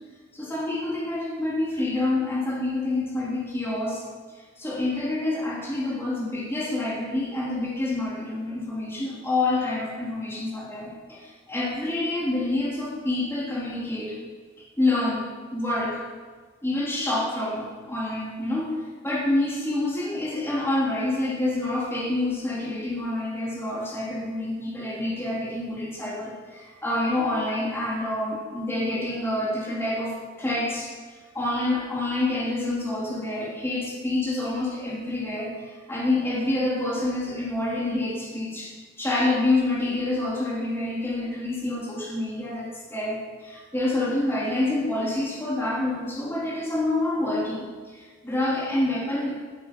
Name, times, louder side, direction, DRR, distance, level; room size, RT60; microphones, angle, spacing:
voice 1, 0.3-4.0 4.6-14.2 14.8-15.3 15.5-16.0 16.6-30.9 31.3-38.7 39.0-47.7 47.9-49.4, left 2 dB, 15° left, -4 dB, 3.0 m, -27 dB
16.5 x 10.5 x 5.2 m, 1.5 s
head